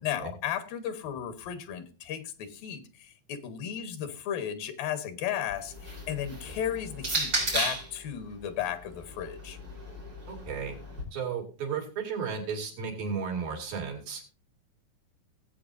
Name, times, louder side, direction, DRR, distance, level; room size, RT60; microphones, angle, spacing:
voice 1, 0.0-9.6, left 9 dB, 85° left, 10 dB, 3.0 m, -35 dB
sound 1, 5.5-8.0 8.9-11.0, right 1 dB, 25° right, 4.1 m, -34 dB
voice 2, 10.3-10.7 11.1-14.2, right 6 dB, 85° right, 1 dB, 4.5 m, -34 dB
18.5 x 8.4 x 2.6 m, 0.37 s
omnidirectional pair, 3.9 m